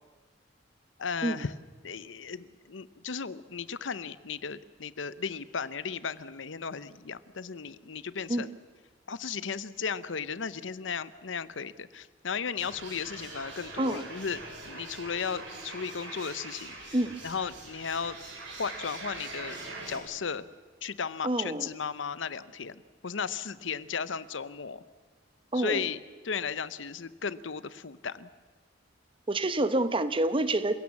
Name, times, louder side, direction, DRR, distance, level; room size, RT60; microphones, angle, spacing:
voice 1, 1.0-1.5 1.8-8.5 9.1-14.4 14.6-16.8 17.2-18.2 18.6-19.6 19.9-20.4 20.8-24.8 25.5-28.3, left 6 dB, 75° left, 16 dB, 0.8 m, -35 dB
sound 1, 12.6-20.0, right 2 dB, 80° right, 5.4 m, -43 dB
voice 2, 21.2-21.7 25.5-25.9 29.3-30.7, right 1 dB, 30° right, 12 dB, 1.0 m, -27 dB
28.0 x 17.0 x 7.2 m, 1.4 s
head